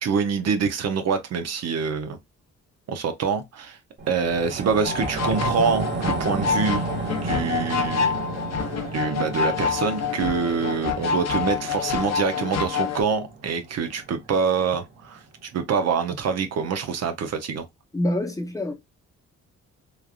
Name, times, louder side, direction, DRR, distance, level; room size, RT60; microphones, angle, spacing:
voice 1, 0.0-2.2 2.9-3.8 4.1-7.0 7.2-8.2 8.9-17.7, right 5 dB, 55° right, 0.8 m, -25 dB
sound 1, 4.0-14.6 14.9-15.0, right 3 dB, 40° right, 1.2 m, -33 dB
sound 2, 4.8-13.0, left 6 dB, 60° left, 0.7 m, -27 dB
voice 2, 17.9-18.7, left 1 dB, 10° left, 0.8 m, -26 dB
3.2 x 2.4 x 2.4 m
cardioid pair, 90°, 30 cm